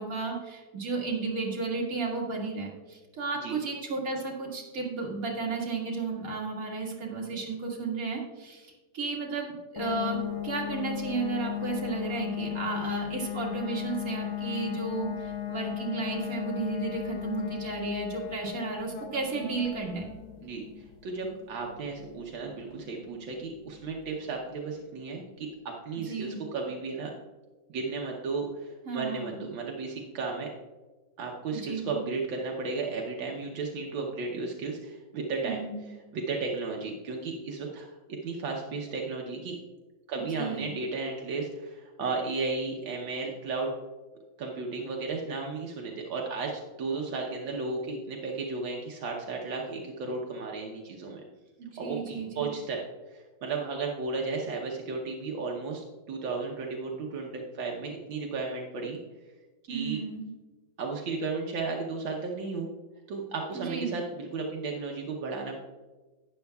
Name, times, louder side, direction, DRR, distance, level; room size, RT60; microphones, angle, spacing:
voice 1, 0.0-20.1 26.1-26.4 28.9-29.4 31.5-32.0 35.4-35.8 40.2-40.7 51.6-52.5 59.7-60.2 63.5-63.9, right 4 dB, 45° right, -2 dB, 2.1 m, -33 dB
sound 1, 9.8-24.3, left 11 dB, 80° left, 1.5 m, -36 dB
voice 2, 20.4-25.5 25.8-27.1 27.7-30.5 31.2-35.6 36.1-39.6 40.1-43.7 44.4-51.2 51.8-52.8 53.1-59.0 59.7-60.0 60.8-62.7 63.1-65.6, right 4 dB, 75° right, -1 dB, 1.6 m, -34 dB
12.0 x 9.5 x 2.3 m, 1.3 s
omnidirectional pair, 2.1 m